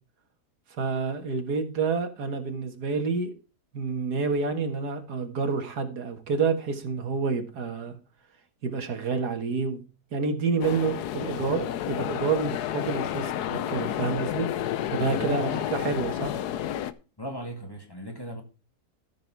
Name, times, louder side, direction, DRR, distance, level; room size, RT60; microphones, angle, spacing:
voice 1, 0.8-3.3 3.7-8.0 8.6-9.8 10.1-14.5 14.9-16.3, right 4 dB, 80° right, 2.1 m, -28 dB
sound 1, 10.6-16.9, left 11 dB, 80° left, 1.3 m, -30 dB
voice 2, 15.2-15.9 17.2-18.4, equal, 15° left, 2.0 m, -37 dB
14.0 x 6.3 x 4.7 m
omnidirectional pair, 1.7 m